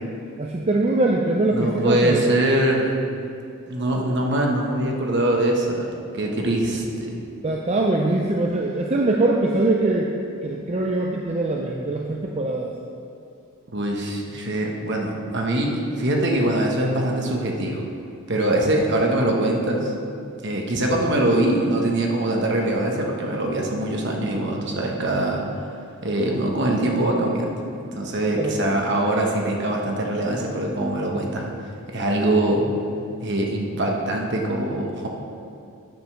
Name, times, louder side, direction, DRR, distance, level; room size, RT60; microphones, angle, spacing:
voice 1, 0.4-2.2 7.4-10.1 10.4-12.7 28.4-28.5, right 2 dB, 30° right, 0 dB, 0.5 m, -22 dB
voice 2, 1.5-2.9 3.7-5.9 6.1-7.2 11.7-11.9 13.7-17.9 18.3-19.9 20.4-25.4 26.0-27.5 27.8-31.5 31.9-32.7 33.2-35.1, right 1 dB, 50° right, 0 dB, 1.2 m, -23 dB
9.2 x 5.1 x 6.2 m, 2.6 s
head